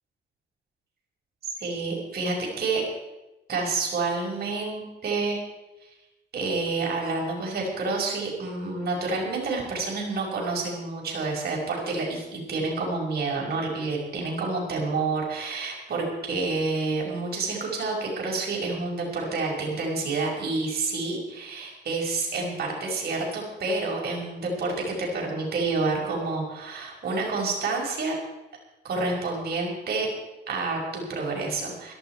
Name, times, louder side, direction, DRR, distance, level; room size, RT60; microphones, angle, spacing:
voice 1, 1.6-2.8 3.5-5.4 6.3-28.1 28.8-30.1 30.5-31.9, right 3 dB, 50° right, -2 dB, 5.6 m, -29 dB
17.0 x 12.5 x 4.7 m, 1.0 s
cardioid pair, 90°, 20 cm